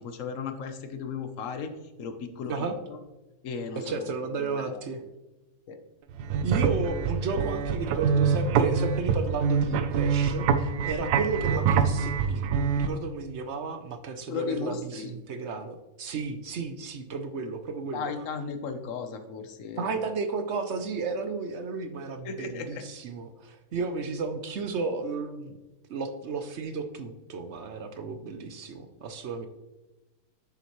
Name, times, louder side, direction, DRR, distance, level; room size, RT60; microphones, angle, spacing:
voice 1, 0.0-1.7 2.0-3.0 3.4-4.1 4.4-4.8 5.7-5.8 14.3-15.2 17.9-19.9 22.2-22.8, left 5 dB, 60° left, 8 dB, 1.1 m, -35 dB
voice 2, 3.8-5.0 6.4-18.1 19.8-25.6 25.9-29.5, right 4 dB, 60° right, 8 dB, 0.8 m, -33 dB
sound 1, 6.1-12.9, right 6 dB, 80° right, 1.2 m, -25 dB
9.9 x 6.9 x 3.1 m, 1.1 s
omnidirectional pair, 1.7 m